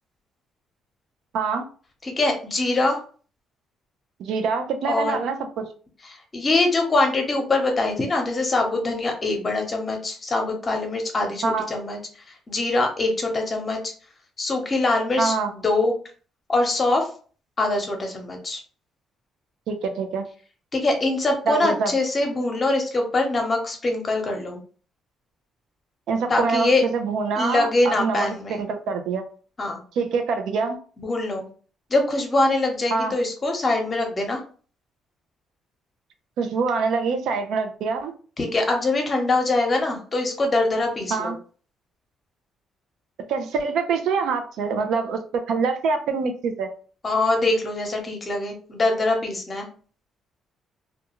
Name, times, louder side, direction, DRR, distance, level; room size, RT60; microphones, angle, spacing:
voice 1, 2.0-3.0 4.9-5.2 6.1-12.0 12.3-13.9 14.4-15.9 16.5-17.1 17.6-18.6 20.7-24.6 26.3-26.8 27.4-28.6 29.6-29.8 31.0-31.4 31.9-34.4 38.4-41.3 47.0-49.7, left 2 dB, 30° left, 3 dB, 0.8 m, -23 dB
voice 2, 4.2-5.6 11.4-11.7 15.2-15.5 19.7-20.3 21.5-21.9 26.1-29.2 29.9-30.8 32.9-33.1 36.4-38.1 41.1-41.4 43.3-46.7, right 4 dB, 75° right, 6 dB, 0.5 m, -25 dB
2.3 x 2.3 x 2.9 m, 0.40 s
cardioid pair, 90°, 0 cm